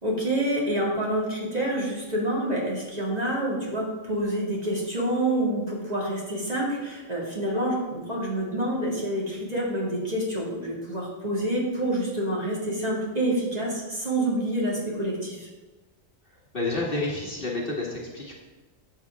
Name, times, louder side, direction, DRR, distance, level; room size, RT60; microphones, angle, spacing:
voice 1, 0.0-15.5, right 1 dB, 30° right, -4 dB, 2.3 m, -27 dB
voice 2, 16.5-18.3, left 2 dB, 40° left, -2 dB, 1.7 m, -29 dB
11.5 x 7.7 x 3.6 m, 1.2 s
omnidirectional pair, 1.4 m